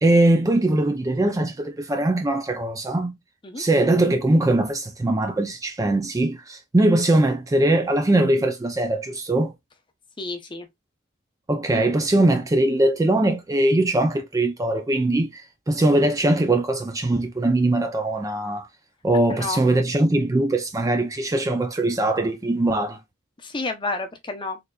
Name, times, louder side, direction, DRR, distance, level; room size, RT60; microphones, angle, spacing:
voice 1, 0.0-3.2 3.6-9.5 11.5-18.7 19.0-23.0, right 1 dB, 15° right, 0.4 m, -21 dB
voice 2, 10.2-10.7 19.3-19.6 23.4-24.6, left 3 dB, 25° left, 0.6 m, -30 dB
3.8 x 3.2 x 2.3 m
head